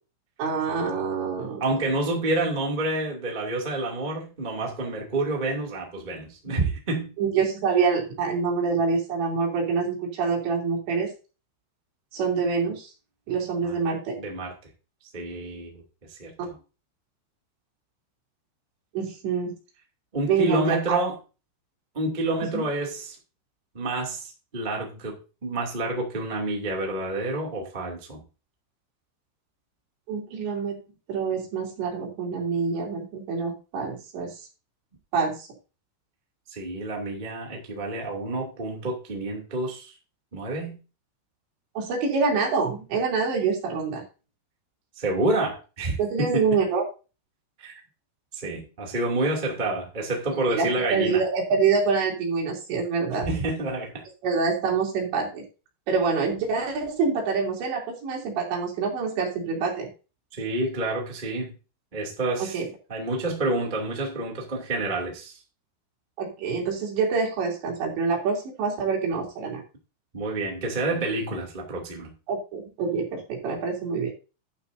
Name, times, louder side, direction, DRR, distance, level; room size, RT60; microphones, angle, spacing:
voice 1, 0.4-1.6 7.2-11.1 12.1-12.9 13.3-14.1 19.0-19.5 20.3-21.0 22.5-22.7 30.1-30.8 31.1-34.3 35.1-35.4 41.8-44.0 46.0-46.8 50.3-53.3 54.2-55.4 55.9-59.9 62.4-62.7 66.2-69.6 72.3-74.1, right 5 dB, 65° right, 5.3 m, -26 dB
voice 2, 1.6-7.1 13.6-13.8 14.2-14.5 15.1-15.8 16.1-16.5 20.1-21.2 21.9-23.1 23.7-25.1 25.4-28.2 36.5-39.9 40.3-40.8 45.0-46.6 47.6-47.8 48.3-51.2 53.2-54.0 60.3-61.5 61.9-62.6 62.9-65.4 70.1-72.1, right 2 dB, 25° right, 1.1 m, -28 dB
11.5 x 11.5 x 2.7 m
omnidirectional pair, 5.7 m